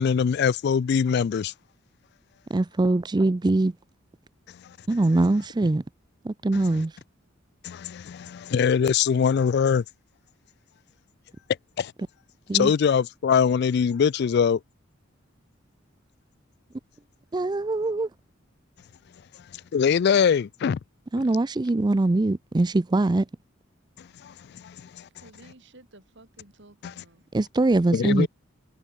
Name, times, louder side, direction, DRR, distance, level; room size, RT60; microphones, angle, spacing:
voice 1, 0.0-1.5 4.5-4.8 6.5-6.8 7.6-9.8 11.8-11.9 12.5-14.6 19.3-20.8 24.0-25.1 26.8-26.9 27.9-28.3, left 7 dB, 55° left, 0.3 m, -23 dB
voice 2, 2.5-3.7 4.9-5.8 6.2-7.0 12.5-12.7 17.3-18.1 21.1-23.3 27.3-28.3, right 2 dB, 20° right, 0.4 m, -22 dB
voice 3, 25.2-27.3, right 2 dB, 60° right, 2.7 m, -53 dB
head